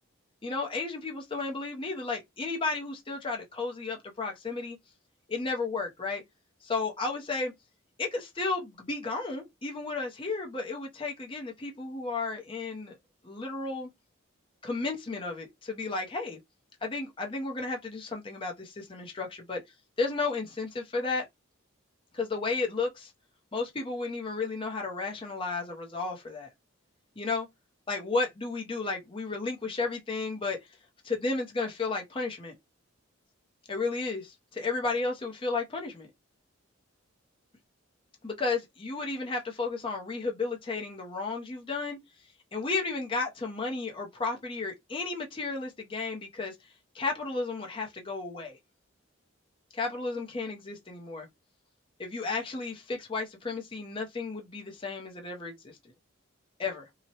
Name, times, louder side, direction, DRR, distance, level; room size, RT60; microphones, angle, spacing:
voice 1, 0.4-4.8 5.3-6.2 6.6-7.5 8.0-13.0 13.2-13.9 14.6-16.4 16.8-19.6 20.0-21.3 22.1-23.1 23.5-26.5 27.2-27.5 27.9-30.7 31.0-32.6 33.7-36.1 38.2-42.0 42.5-46.5 46.9-48.6 49.7-51.3 52.0-55.8 56.6-56.9, left 3 dB, 25° left, 0.6 m, -33 dB
2.8 x 2.1 x 2.7 m
head